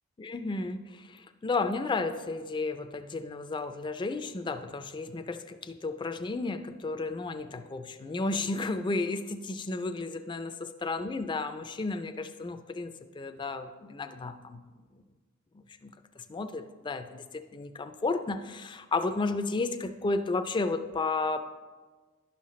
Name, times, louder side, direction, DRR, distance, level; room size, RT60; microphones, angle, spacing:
voice 1, 0.2-14.6 15.8-15.9 16.2-21.4, left 3 dB, 20° left, 8 dB, 0.4 m, -33 dB
11.5 x 5.7 x 3.1 m, 1.4 s
head